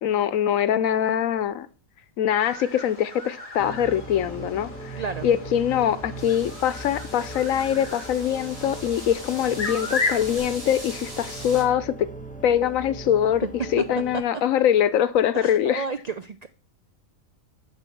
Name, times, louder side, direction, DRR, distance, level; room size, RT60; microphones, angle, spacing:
voice 1, 0.0-1.7 2.2-12.1 12.4-13.5 13.7-15.8, left 10 dB, 85° left, 1.1 m, -23 dB
sound 1, 2.4-10.4, left 3 dB, 35° left, 1.8 m, -35 dB
sound 2, 3.6-14.2, right 2 dB, 5° left, 0.9 m, -39 dB
voice 2, 5.0-5.3 13.4-13.5 13.8-13.9 14.1-14.2 15.3-16.5, right 5 dB, 85° right, 0.3 m, -31 dB
sound 3, 6.2-11.6, equal, 45° right, 3.7 m, -41 dB
7.8 x 6.2 x 6.0 m
omnidirectional pair, 1.4 m